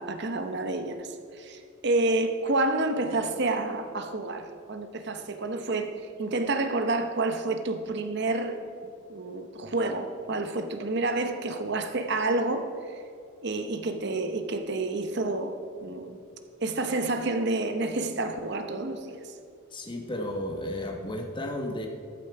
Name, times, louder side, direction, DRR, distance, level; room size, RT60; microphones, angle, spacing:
voice 1, 0.0-13.0 13.4-16.2 16.6-19.3, right 2 dB, 50° right, 0.9 m, -29 dB
voice 2, 19.7-21.9, left 1 dB, 20° left, 1.1 m, -33 dB
14.0 x 8.4 x 4.7 m
head